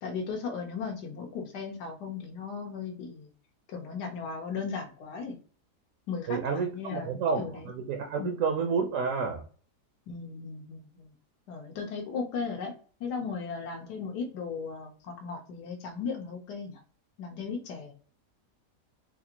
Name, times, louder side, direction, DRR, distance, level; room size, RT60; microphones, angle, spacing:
voice 1, 0.0-3.3 3.7-5.3 6.1-7.7 8.2-8.4 10.1-11.1 11.5-12.7 13.0-16.8 17.2-17.9, left 5 dB, 85° left, 2 dB, 1.4 m, -36 dB
voice 2, 6.3-9.4, right 5 dB, 65° right, 4 dB, 0.8 m, -30 dB
4.1 x 2.5 x 2.8 m, 0.42 s
omnidirectional pair, 1.7 m